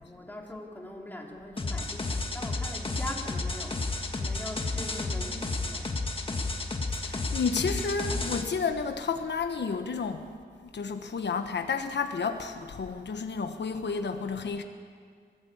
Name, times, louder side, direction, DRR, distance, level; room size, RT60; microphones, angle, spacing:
voice 1, 0.0-6.1, left 1 dB, 10° left, -1 dB, 2.9 m, -42 dB
sound 1, 1.6-8.4, left 3 dB, 30° left, 1.7 m, -32 dB
voice 2, 7.0-14.6, left 5 dB, 75° left, 6 dB, 1.2 m, -31 dB
23.5 x 16.0 x 8.8 m, 2.1 s
wide cardioid pair, 170°, 18 cm